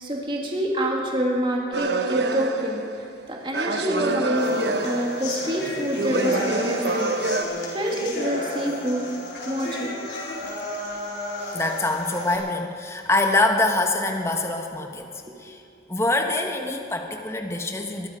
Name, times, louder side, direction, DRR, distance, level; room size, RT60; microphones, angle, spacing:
voice 1, 0.0-7.1 7.7-9.0 9.5-10.0 15.2-15.3, equal, 30° right, -1 dB, 2.1 m, -27 dB
Working on a no beat song, 1.7-3.2 3.5-5.6 5.9-7.4, right 2 dB, 75° right, 0.9 m, -26 dB
sound 1, 4.4-12.4, left 1 dB, 70° left, 4.1 m, -32 dB
voice 2, 11.5-15.1 15.4-15.6 15.9-18.1, left 2 dB, 15° left, 3 dB, 1.1 m, -24 dB
21.5 x 13.0 x 5.0 m, 2.5 s
head